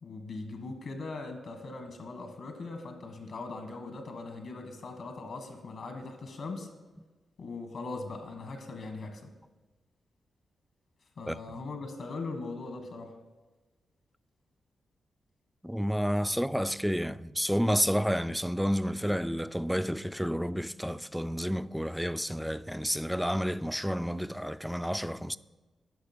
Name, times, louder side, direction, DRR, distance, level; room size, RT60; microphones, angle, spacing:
voice 1, 0.0-6.7 7.4-9.3 11.2-13.1, left 3 dB, 70° left, 1.3 m, -40 dB
voice 2, 15.6-25.4, equal, ahead, 0.3 m, -30 dB
11.0 x 6.0 x 4.4 m
supercardioid pair, 45°, 0 cm